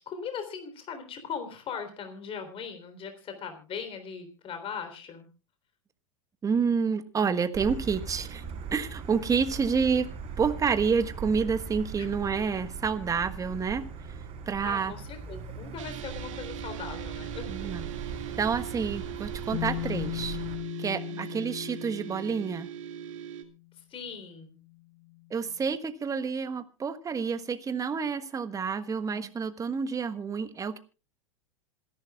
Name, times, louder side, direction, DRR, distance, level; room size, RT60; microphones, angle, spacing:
voice 1, 0.0-5.3 12.0-12.1 14.6-17.7 21.1-21.4 23.7-24.6, left 6 dB, 35° left, 7 dB, 3.6 m, -39 dB
voice 2, 6.4-8.4 8.7-10.1 10.4-13.9 14.5-14.9 17.5-17.9 18.4-20.4 20.8-22.7 25.3-30.8, right 5 dB, 20° right, 11 dB, 1.4 m, -29 dB
Motor vehicle (road), 7.5-20.6, right 5 dB, 40° right, 4.2 m, -39 dB
sound 1, 15.8-23.4, right 11 dB, 75° right, 2.2 m, -41 dB
Bass guitar, 19.5-23.5 24.6-24.7, left 21 dB, 65° left, 1.5 m, -37 dB
26.5 x 11.5 x 2.4 m, 0.32 s
hypercardioid pair, 105°, 17 cm